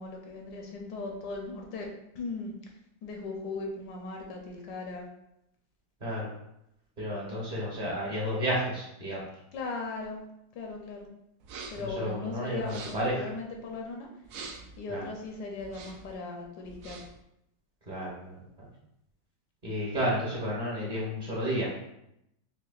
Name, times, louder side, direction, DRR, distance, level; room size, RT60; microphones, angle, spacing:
voice 1, 0.0-2.5 3.0-5.1 9.5-10.2 10.5-11.1 11.7-14.1 14.8-17.0, left 3 dB, 70° left, 1 dB, 1.2 m, -38 dB
voice 2, 7.0-9.2 11.7-13.2 14.9-15.1 17.9-18.7 19.6-21.7, equal, 40° right, -6 dB, 0.6 m, -32 dB
sound 1, 11.4-11.9 12.6-13.2 14.2-14.8 15.6-16.1 16.6-17.2, right 4 dB, 80° right, 0.7 m, -44 dB
5.8 x 2.2 x 2.4 m, 0.80 s
omnidirectional pair, 2.0 m